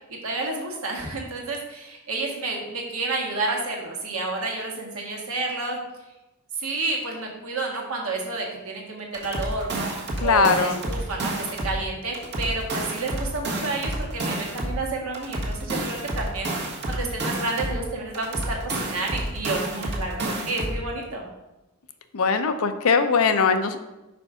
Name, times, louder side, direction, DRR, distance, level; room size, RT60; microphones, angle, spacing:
voice 1, 0.2-5.8 6.6-9.9 10.2-21.2, right 3 dB, 70° right, -1 dB, 1.6 m, -30 dB
sound 1, 9.1-11.8 12.1-14.8 15.1-17.8 18.1-20.8, right 1 dB, 50° right, 1.4 m, -29 dB
voice 2, 10.2-10.8 22.1-23.8, left 5 dB, 70° left, 9 dB, 0.6 m, -20 dB
5.3 x 5.1 x 4.9 m, 1.0 s
head